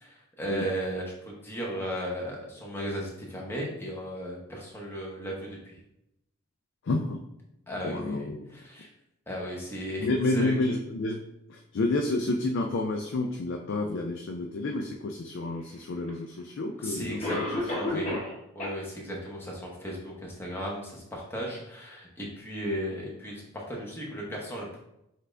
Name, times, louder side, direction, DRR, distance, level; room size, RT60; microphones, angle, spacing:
voice 1, 0.0-5.8 7.7-8.9 9.3-10.6 16.8-18.2 18.5-24.8, equal, 10° left, -3 dB, 0.9 m, -35 dB
voice 2, 6.8-7.2 7.8-8.6 10.0-11.2 11.5-17.4 17.9-18.2, left 2 dB, 55° left, 3 dB, 0.4 m, -30 dB
Cough, 16.1-16.2 17.2-18.3 18.6-18.7 19.3-19.4 19.9-20.0, left 1 dB, 30° left, 1.3 m, -31 dB
5.7 x 2.5 x 3.2 m, 0.84 s
head